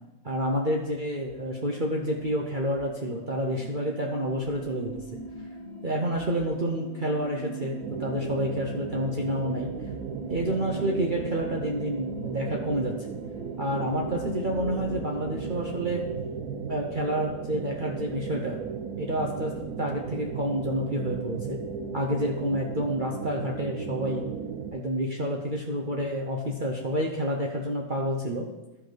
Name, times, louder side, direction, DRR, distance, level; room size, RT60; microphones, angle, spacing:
voice 1, 0.2-5.0 5.8-9.7 10.3-12.9 13.6-16.0 16.7-18.6 19.0-19.5 19.8-21.6 21.9-24.3 24.7-28.5, equal, 40° right, -1 dB, 1.0 m, -29 dB
sound 1, 1.1-16.1, equal, 50° left, 1.8 m, -42 dB
sound 2, 7.8-24.7, right 6 dB, 80° right, 1.2 m, -36 dB
14.0 x 5.2 x 4.0 m, 1.0 s
omnidirectional pair, 1.5 m